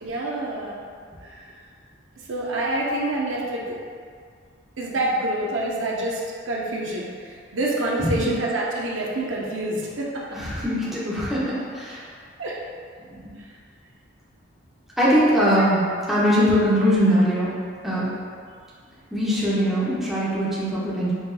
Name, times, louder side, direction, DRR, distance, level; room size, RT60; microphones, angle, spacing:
voice 1, 0.0-0.9 1.2-1.5 2.3-3.8 4.8-10.4 12.4-12.6 13.4-13.5 15.3-15.6, right 1 dB, 70° right, -3 dB, 0.6 m, -27 dB
voice 2, 10.3-12.0 13.1-13.2 15.0-15.8 16.1-17.5 17.8-18.0 19.1-21.1, equal, ahead, -10 dB, 0.8 m, -21 dB
5.4 x 3.0 x 2.2 m, 2.1 s
head